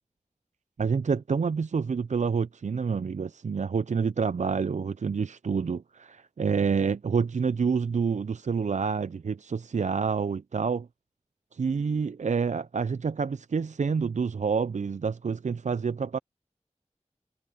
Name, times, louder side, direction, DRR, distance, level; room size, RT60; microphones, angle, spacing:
voice 1, 0.8-10.9 11.5-16.2, right 5 dB, 70° right, 0.4 m, -28 dB
wide cardioid pair, 50°, 13 cm